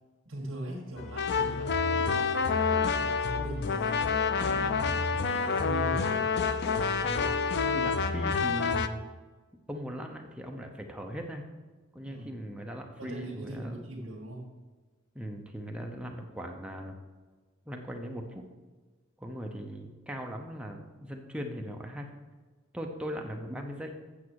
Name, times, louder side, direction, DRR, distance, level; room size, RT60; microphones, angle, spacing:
voice 1, 0.3-2.7 3.0-6.3 12.0-12.3 13.0-14.5, right 1 dB, 65° right, -2 dB, 1.8 m, -41 dB
sound 1, 1.0-8.9, left 5 dB, 50° left, 0.4 m, -28 dB
voice 2, 7.0-9.0 9.7-11.4 11.9-13.8 15.1-16.9 17.7-18.4 19.2-22.1 22.7-24.0, equal, 5° right, 2 dB, 0.7 m, -39 dB
8.5 x 7.2 x 4.7 m, 1.3 s
head